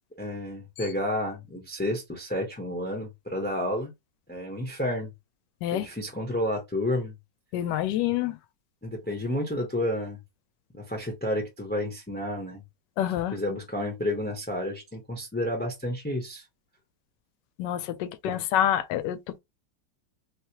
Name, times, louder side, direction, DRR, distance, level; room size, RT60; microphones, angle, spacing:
voice 1, 0.2-3.9 4.3-5.1 5.7-7.1 8.8-10.2 10.7-12.6 13.3-16.4 18.2-18.4, left 1 dB, 10° left, 0.5 m, -30 dB
voice 2, 7.5-8.4 13.0-13.4 17.6-19.4, left 11 dB, 75° left, 1.1 m, -27 dB
3.3 x 2.9 x 2.9 m
omnidirectional pair, 2.1 m